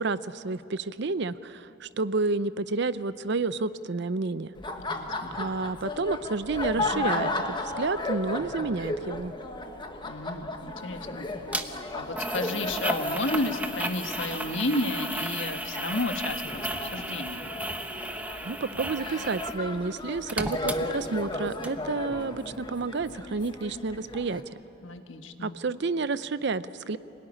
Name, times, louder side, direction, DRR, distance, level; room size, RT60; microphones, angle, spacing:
voice 1, 0.0-4.5 5.3-7.3 7.6-9.3 18.4-24.6 25.4-27.0, right 3 dB, 60° right, 15 dB, 0.6 m, -30 dB
Laughter, 4.5-24.4, left 2 dB, 25° left, 1.3 m, -35 dB
voice 2, 4.8-5.4 10.1-11.3 11.9-17.5 24.8-25.6, left 2 dB, 70° left, 6 dB, 1.5 m, -32 dB
sound 1, 11.5-11.6 12.2-19.6 19.9-21.3 21.6-21.7, right 1 dB, 10° right, 0.9 m, -34 dB
26.5 x 18.0 x 10.0 m, 2.9 s
head